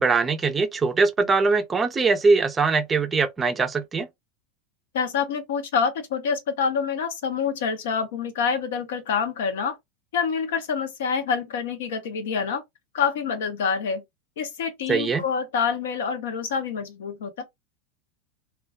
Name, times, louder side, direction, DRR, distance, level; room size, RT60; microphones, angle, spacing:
voice 1, 0.0-4.1 14.9-15.2, right 4 dB, 20° right, 0.4 m, -22 dB
voice 2, 4.9-9.8 10.1-12.6 12.9-14.0 14.4-17.4, left 6 dB, 70° left, 0.6 m, -26 dB
2.3 x 2.1 x 2.5 m
hypercardioid pair, 90°, 0 cm